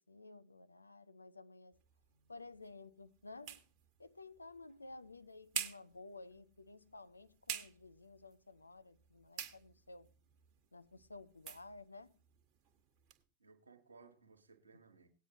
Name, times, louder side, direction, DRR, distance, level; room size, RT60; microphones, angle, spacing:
voice 1, 0.0-1.8 2.3-3.6 4.0-10.1 10.7-12.2 14.7-14.8, left 3 dB, 80° left, 0.5 m, -54 dB
sound 1, 1.7-13.2, right 9 dB, 40° right, 1.2 m, -50 dB
voice 2, 13.4-15.1, right 4 dB, 75° right, 1.4 m, -62 dB
18.0 x 9.2 x 2.9 m
figure-of-eight pair, 90°, 0 cm